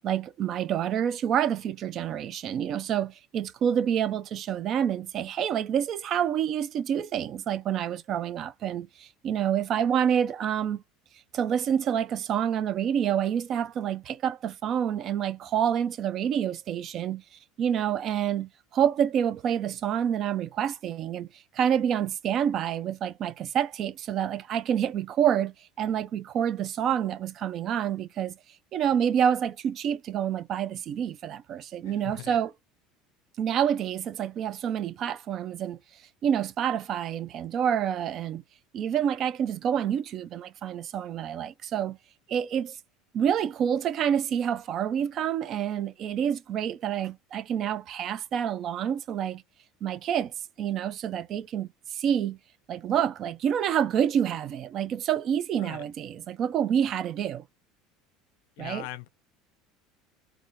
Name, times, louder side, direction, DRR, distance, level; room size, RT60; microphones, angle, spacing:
voice 1, 0.0-10.8 11.3-21.3 21.5-28.4 28.7-32.5 33.4-35.8 36.2-38.4 38.7-42.0 42.3-42.8 43.1-49.4 49.8-52.4 52.7-57.4 58.6-58.9, right 9 dB, 50° right, 0.3 m, -28 dB
voice 2, 31.9-32.4 55.6-55.9 58.6-59.1, left 16 dB, 80° left, 0.4 m, -40 dB
2.5 x 2.3 x 3.0 m
supercardioid pair, 100°, 0 cm